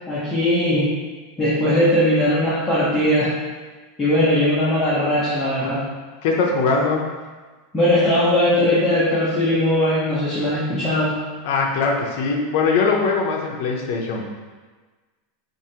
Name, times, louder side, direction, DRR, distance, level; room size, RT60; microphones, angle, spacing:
voice 1, 0.1-0.9 1.4-3.3 4.0-5.8 7.7-11.2, left 1 dB, 10° left, -11 dB, 0.8 m, -19 dB
voice 2, 6.2-7.0 11.4-14.2, left 4 dB, 60° left, 0 dB, 0.7 m, -21 dB
4.9 x 2.6 x 2.8 m, 1.3 s
supercardioid pair, 160°, 0 cm